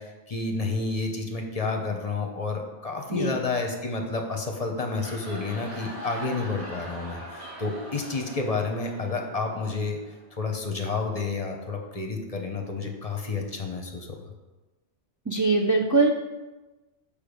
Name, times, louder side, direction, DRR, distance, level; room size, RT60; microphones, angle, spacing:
voice 1, 0.0-10.0 10.3-14.3, left 3 dB, 35° left, 3 dB, 0.9 m, -30 dB
voice 2, 3.1-3.4 15.3-16.1, right 3 dB, 25° right, 0 dB, 0.4 m, -22 dB
sound 1, 4.7-10.3, equal, 70° right, 3.5 m, -42 dB
6.7 x 5.3 x 5.2 m, 1.1 s
omnidirectional pair, 1.2 m